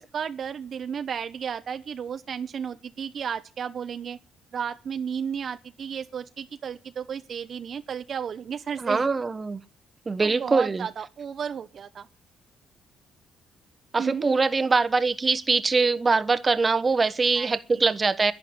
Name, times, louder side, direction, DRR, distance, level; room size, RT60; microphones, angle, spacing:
voice 1, 0.1-4.2 4.5-9.1 10.2-12.1 14.0-14.3 17.4-17.5, right 7 dB, 55° right, 0.8 m, -33 dB
voice 2, 8.8-9.6 10.1-10.9 13.9-18.3, right 4 dB, 30° right, 1.1 m, -23 dB
11.0 x 10.5 x 9.7 m
cardioid pair, 90°, 0 cm